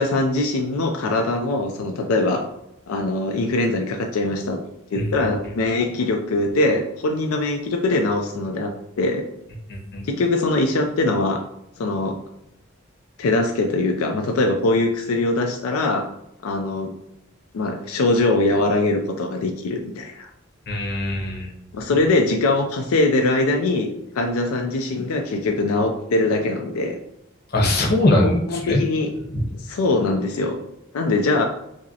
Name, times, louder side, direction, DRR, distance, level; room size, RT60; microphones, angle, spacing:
voice 1, 0.0-2.5 2.9-4.6 4.9-9.2 10.0-11.4 11.8-12.2 13.2-16.1 16.4-16.9 17.5-20.3 21.7-23.9 24.1-27.0 28.2-29.1 29.6-30.6 30.9-31.5, left 2 dB, 85° left, 3 dB, 0.4 m, -22 dB
voice 2, 9.7-10.1 20.7-21.5 27.5-28.8 29.3-29.4, left 1 dB, 45° left, -1 dB, 0.8 m, -21 dB
5.0 x 2.0 x 2.7 m, 0.85 s
head